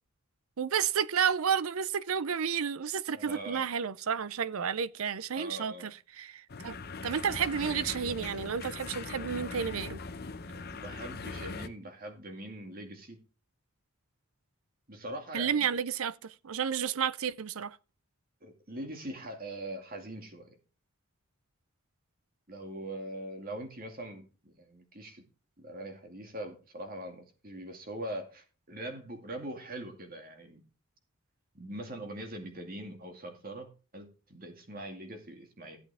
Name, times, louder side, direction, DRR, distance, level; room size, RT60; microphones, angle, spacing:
voice 1, 0.6-6.8 7.0-10.0 15.3-17.8, right 7 dB, 70° right, 0.5 m, -31 dB
voice 2, 3.2-3.6 5.3-5.9 10.5-13.2 14.9-15.7 18.4-20.6 22.5-25.2 25.6-30.6 31.5-35.8, right 1 dB, 40° right, 2.3 m, -42 dB
sound 1, 6.5-11.7, left 4 dB, 45° left, 0.8 m, -40 dB
14.0 x 8.1 x 3.5 m
head